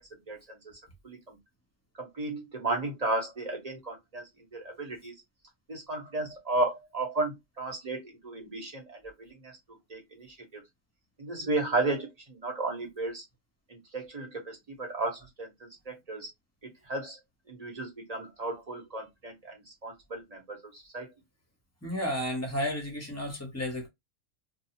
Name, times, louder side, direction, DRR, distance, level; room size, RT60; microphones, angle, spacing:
voice 1, 0.3-0.6 1.0-1.4 2.0-5.1 5.7-9.5 9.9-10.6 11.2-13.2 13.7-16.3 16.6-17.2 17.5-21.1, right 2 dB, 30° right, 1.1 m, -34 dB
voice 2, 21.8-23.9, equal, 15° left, 0.9 m, -32 dB
2.5 x 2.3 x 2.8 m
omnidirectional pair, 1.4 m